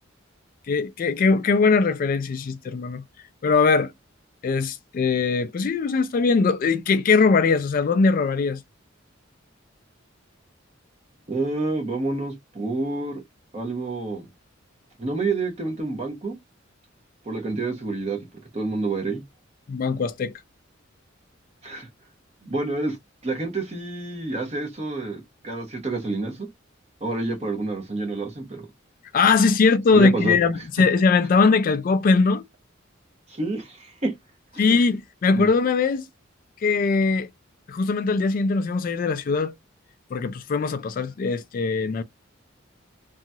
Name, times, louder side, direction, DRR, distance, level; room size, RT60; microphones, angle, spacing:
voice 1, 0.7-3.0 3.4-3.9 4.4-8.6 19.7-20.3 29.1-32.4 34.6-36.1 36.6-37.3 37.7-39.5 40.1-42.0, left 4 dB, 45° left, 0.3 m, -21 dB
voice 2, 11.3-13.2 13.5-14.3 15.0-16.3 17.2-18.2 18.5-19.2 21.6-21.9 22.4-23.0 23.2-26.5 27.0-28.7 29.9-30.4 33.3-34.1 35.3-35.5, right 3 dB, 30° right, 0.9 m, -28 dB
2.8 x 2.3 x 2.7 m
head